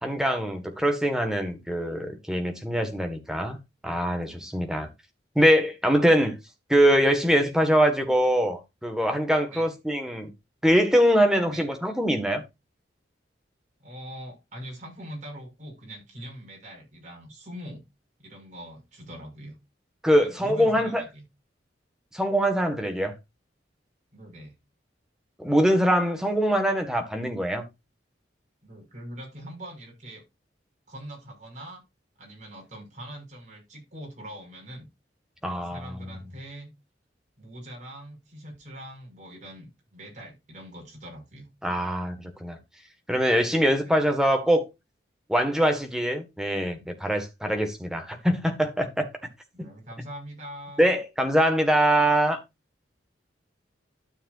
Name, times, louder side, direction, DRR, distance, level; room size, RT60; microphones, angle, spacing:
voice 1, 0.0-3.6 3.8-4.9 5.3-6.4 6.7-10.3 10.6-12.4 20.0-21.0 22.1-23.1 25.4-27.6 35.4-36.0 41.6-42.6 43.1-44.6 45.3-49.1 50.8-52.4, equal, 5° right, 1.6 m, -23 dB
voice 2, 13.8-17.8 18.2-19.6 20.2-21.3 24.1-24.6 28.6-30.2 30.9-31.8 32.2-34.9 35.6-36.7 37.4-41.5 43.8-43.9 49.5-50.9, equal, 40° right, 5.9 m, -42 dB
12.5 x 7.3 x 2.6 m
head